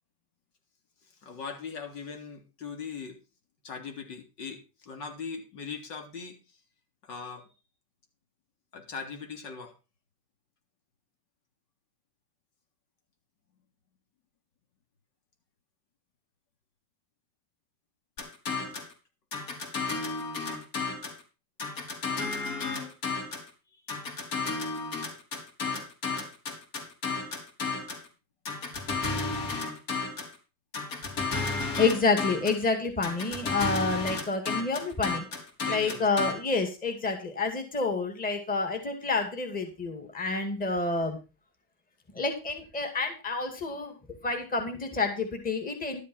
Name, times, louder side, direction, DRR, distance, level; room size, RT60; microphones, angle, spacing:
voice 1, 1.1-3.2 3.6-6.6 7.0-7.5 8.7-9.7 23.7-23.8 35.6-36.1, left 5 dB, 75° left, 4 dB, 3.5 m, -40 dB
sound 1, 18.2-18.9 19.3-21.2 21.6-23.5 23.9-28.1 28.5-30.4 30.7-32.6 33.0-36.3, left 4 dB, 60° left, 4.4 m, -32 dB
voice 2, 31.8-35.3 35.7-41.2 42.1-43.9 44.2-46.0, left 3 dB, 20° left, 5 dB, 2.3 m, -28 dB
12.5 x 7.6 x 5.4 m, 0.31 s
supercardioid pair, 145°, 47 cm